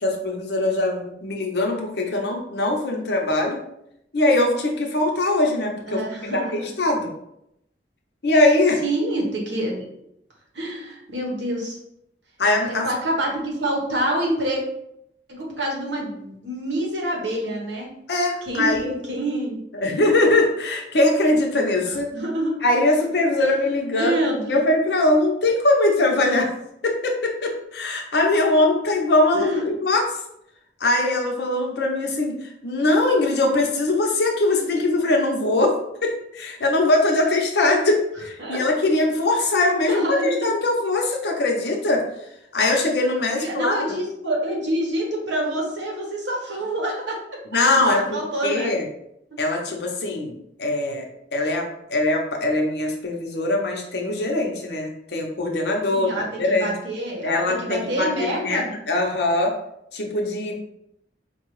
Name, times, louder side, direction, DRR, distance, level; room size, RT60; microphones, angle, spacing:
voice 1, 0.0-3.6 4.1-6.0 6.3-7.1 8.2-8.8 12.4-12.9 18.1-19.0 19.8-22.1 22.6-24.1 24.5-26.5 26.8-30.2 30.8-42.0 42.5-43.8 47.5-48.8 49.4-50.3 50.6-51.0 51.3-56.1 56.4-56.7 57.2-59.5 59.9-60.6, left 2 dB, 60° left, 1 dB, 0.7 m, -21 dB
voice 2, 5.9-6.5 8.8-9.8 10.5-11.8 12.6-14.6 15.3-17.9 18.4-19.6 19.8-20.0 22.1-22.6 23.4-24.6 29.3-29.6 38.4-38.6 39.9-40.5 43.3-47.4 47.9-48.7 49.3-49.4 55.9-58.7, right 1 dB, 70° right, -1 dB, 1.0 m, -27 dB
4.6 x 2.3 x 3.1 m, 0.78 s
head